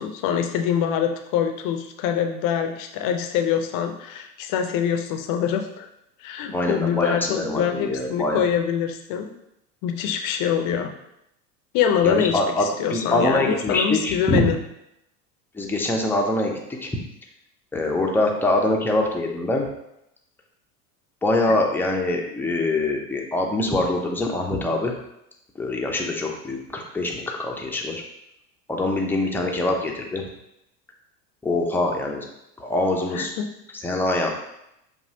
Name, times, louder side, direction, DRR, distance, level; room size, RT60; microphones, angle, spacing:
voice 1, 0.0-5.9 6.2-9.3 9.8-10.9 11.7-14.6 33.1-33.5, left 8 dB, 45° left, 6 dB, 0.6 m, -24 dB
voice 2, 6.5-8.4 12.0-14.5 15.5-16.9 17.7-19.7 21.2-24.9 25.6-28.0 28.7-30.2 31.4-32.2 32.6-33.3 33.8-34.3, left 2 dB, 5° left, 0 dB, 0.6 m, -24 dB
5.3 x 2.4 x 2.7 m, 0.82 s
hypercardioid pair, 80°, 46 cm